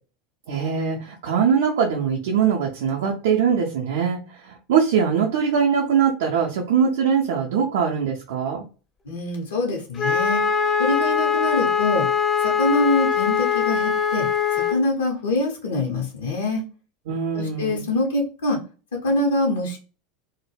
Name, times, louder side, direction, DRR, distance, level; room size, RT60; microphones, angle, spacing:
voice 1, 0.5-4.2 4.5-8.6 17.1-17.8, right 7 dB, 60° right, -1 dB, 0.4 m, -22 dB
voice 2, 9.1-10.4 10.8-12.1 12.4-14.3 14.5-16.6 17.3-18.6 19.0-19.8, left 2 dB, 70° left, 0 dB, 0.6 m, -24 dB
Wind instrument woodwind instrument, 10.0-14.8, left 7 dB, 30° left, 0.5 m, -22 dB
2.1 x 2.0 x 3.2 m, 0.35 s
figure-of-eight pair, 80°, 0 cm